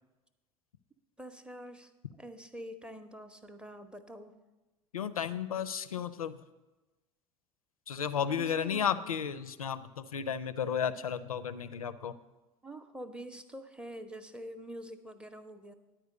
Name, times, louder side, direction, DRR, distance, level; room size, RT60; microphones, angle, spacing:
voice 1, 1.2-1.9 2.2-4.4 8.3-8.9 12.6-15.7, right 1 dB, 5° right, 8 dB, 0.6 m, -45 dB
voice 2, 4.9-6.4 7.9-12.1, left 8 dB, 80° left, 13 dB, 0.4 m, -33 dB
10.0 x 4.6 x 7.5 m, 1.1 s
figure-of-eight pair, 70°, 18 cm